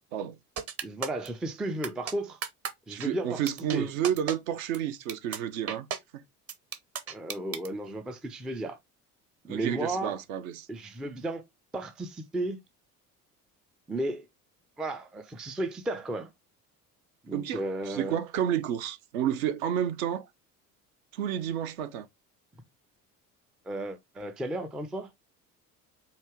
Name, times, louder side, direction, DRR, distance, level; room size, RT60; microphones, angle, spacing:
sound 1, 0.6-1.3 1.8-2.1 2.4-2.7 3.0-3.1 3.5-3.8 4.0-4.3 4.7-4.8 5.1-5.4 5.7-6.0 6.5-7.7, right 7 dB, 30° right, 0.9 m, -33 dB
voice 1, 0.8-2.4 2.9-3.4 3.7-3.9 7.1-8.8 9.4-10.2 10.7-11.4 11.7-12.6 13.9-14.3 14.8-16.3 17.2-18.2 23.6-25.1, right 1 dB, ahead, 0.3 m, -34 dB
voice 2, 2.9-5.9 9.5-10.7 17.3-20.3 21.1-22.1, right 10 dB, 60° right, 0.8 m, -30 dB
4.4 x 2.8 x 3.4 m
figure-of-eight pair, 60°, 47 cm